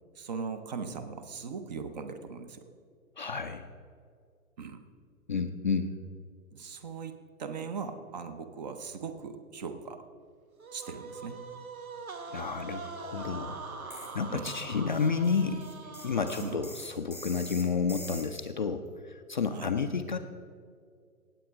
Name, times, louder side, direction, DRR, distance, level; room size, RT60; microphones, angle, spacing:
voice 1, 0.1-2.7 4.6-4.8 6.5-10.0 10.7-11.4 14.3-14.6 16.4-16.6 19.5-19.7, right 5 dB, 30° right, 9 dB, 0.7 m, -39 dB
voice 2, 3.2-3.6 5.3-6.0 12.3-13.6 13.9-15.7 16.0-20.2, left 5 dB, 35° left, 6 dB, 0.4 m, -31 dB
sound 1, 10.6-16.9, right 4 dB, 70° right, 1.3 m, -43 dB
sound 2, 13.9-14.2 14.5-18.5, left 1 dB, 5° right, 1.1 m, -45 dB
17.5 x 8.2 x 3.5 m, 2.2 s
figure-of-eight pair, 120°, 44 cm